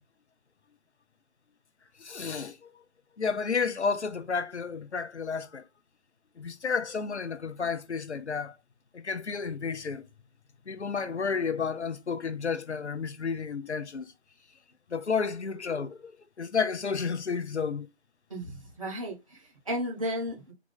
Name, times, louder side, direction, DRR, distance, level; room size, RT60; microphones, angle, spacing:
voice 1, 2.0-2.7 3.2-5.6 6.4-8.6 8.9-10.1 10.7-14.1 14.9-17.9, left 5 dB, 80° left, 0.6 m, -31 dB
voice 2, 18.3-20.5, equal, 30° right, 1.3 m, -34 dB
3.7 x 2.4 x 3.8 m
figure-of-eight pair, 155°, 33 cm